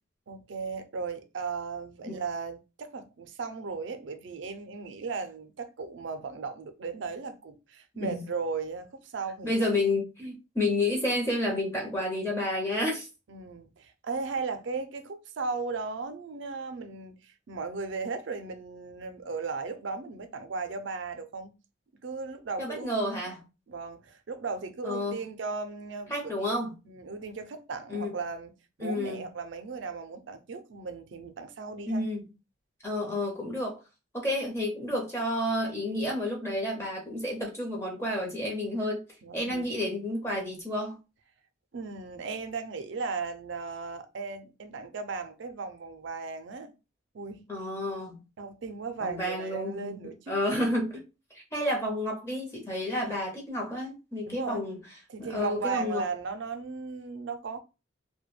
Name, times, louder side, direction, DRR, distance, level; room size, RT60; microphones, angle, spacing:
voice 1, 0.3-9.5 13.3-21.5 22.0-22.9 23.7-28.5 28.8-32.1 39.2-39.7 41.7-46.7 47.1-47.4 48.4-50.3 54.3-54.6 55.1-57.6, right 4 dB, 70° right, 0.4 m, -36 dB
voice 2, 9.4-13.1 22.6-23.4 24.8-25.2 26.1-26.8 27.9-28.1 28.8-29.2 31.9-32.2 32.8-33.8 34.1-39.0 39.3-41.0 47.5-48.2 49.0-51.0 51.3-54.8 55.2-56.0, left 1 dB, 15° left, 0.6 m, -30 dB
2.2 x 2.1 x 3.1 m
head